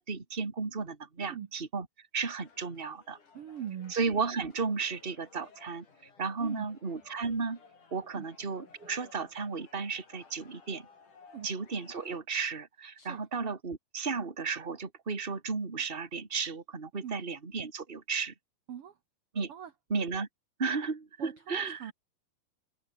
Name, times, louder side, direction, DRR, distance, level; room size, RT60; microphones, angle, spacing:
voice 1, 0.0-1.9 2.1-3.2 3.9-7.6 7.9-10.9 11.4-18.3 19.3-19.5 19.9-20.3 20.6-21.9, right 4 dB, 20° right, 2.3 m, -34 dB
sound 1, 2.4-12.2, left 5 dB, 65° left, 6.6 m, -58 dB
voice 2, 3.3-3.9 6.4-6.7 8.1-8.3 11.3-11.5 13.0-13.3 17.0-17.1 18.7-18.9 19.5-19.7 21.2-21.9, right 9 dB, 55° right, 1.9 m, -41 dB
omnidirectional pair, 4.0 m